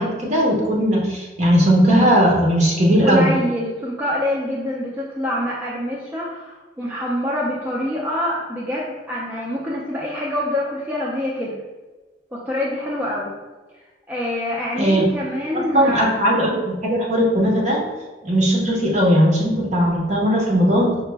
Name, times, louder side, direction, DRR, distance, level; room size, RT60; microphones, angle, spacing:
voice 1, 0.0-3.3 14.7-15.1 15.5-17.8 18.2-21.0, equal, 40° right, -2 dB, 0.9 m, -18 dB
voice 2, 3.0-11.5 12.5-13.3 14.1-16.2, left 1 dB, 10° right, -5 dB, 0.4 m, -25 dB
4.9 x 2.1 x 3.3 m, 1.2 s
head